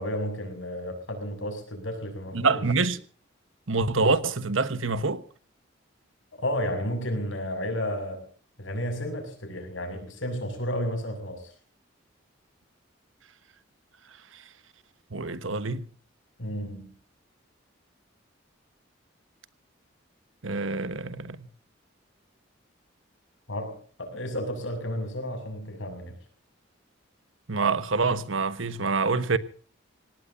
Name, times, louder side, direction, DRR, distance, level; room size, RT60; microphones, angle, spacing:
voice 1, 0.0-2.7 6.3-8.3 8.6-11.5 16.4-16.9 23.5-26.1, equal, 80° left, 6.6 m, -32 dB
voice 2, 2.3-3.0 3.7-5.2 15.1-15.8 20.4-21.5 27.5-29.4, right 4 dB, 80° right, 1.3 m, -26 dB
26.5 x 18.5 x 2.7 m
head